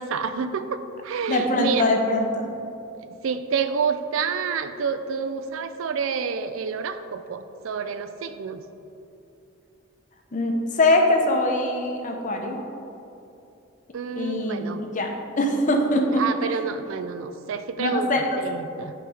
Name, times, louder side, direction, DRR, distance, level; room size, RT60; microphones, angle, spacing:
voice 1, 0.0-1.9 3.2-8.6 13.9-14.8 16.2-18.9, right 6 dB, 75° right, 10 dB, 0.4 m, -28 dB
voice 2, 1.3-2.5 10.3-12.6 14.2-16.2 17.8-18.4, left 1 dB, 40° left, 3 dB, 0.6 m, -23 dB
8.8 x 3.2 x 4.8 m, 2.7 s
head